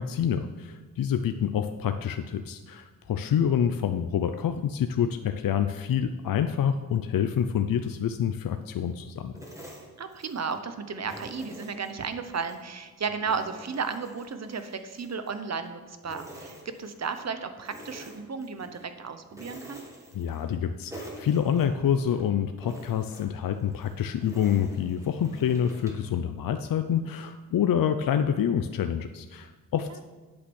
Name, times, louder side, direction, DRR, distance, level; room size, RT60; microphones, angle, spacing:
voice 1, 0.0-9.4 20.1-30.0, left 8 dB, 65° left, 8 dB, 0.6 m, -27 dB
sound 1, 9.4-10.6 11.0-12.6 13.0-15.7 16.0-17.3 17.6-18.9 19.3-20.6 20.9-22.2 22.6-26.1, right 1 dB, 10° right, 2.2 m, -47 dB
voice 2, 10.0-19.8 29.9-30.0, right 5 dB, 45° right, 9 dB, 1.0 m, -34 dB
8.7 x 8.5 x 6.3 m, 1.3 s
wide cardioid pair, 100°, 36 cm